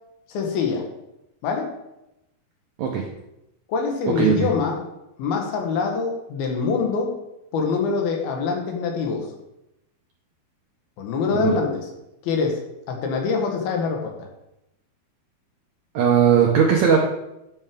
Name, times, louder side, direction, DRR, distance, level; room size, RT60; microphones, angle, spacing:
voice 1, 0.3-0.9 1.4-1.7 3.7-4.8 5.2-7.1 7.5-9.3 11.0-11.9 12.2-12.6 12.9-14.3, left 5 dB, 80° left, 2 dB, 3.1 m, -24 dB
voice 2, 4.2-4.5 11.4-11.6 15.9-17.0, right 7 dB, 80° right, 0 dB, 1.6 m, -18 dB
12.5 x 5.7 x 3.6 m, 0.88 s
omnidirectional pair, 4.4 m